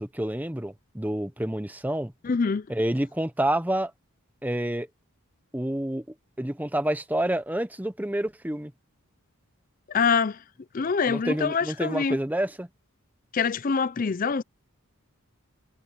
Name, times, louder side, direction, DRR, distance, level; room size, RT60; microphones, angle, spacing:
voice 1, 0.0-2.1 2.7-3.9 4.4-4.9 5.5-6.0 6.4-8.7 11.1-12.7, right 1 dB, 10° right, 0.8 m, -28 dB
voice 2, 2.2-2.7 9.9-10.4 10.7-12.2 13.3-14.4, left 5 dB, 40° left, 0.4 m, -25 dB
head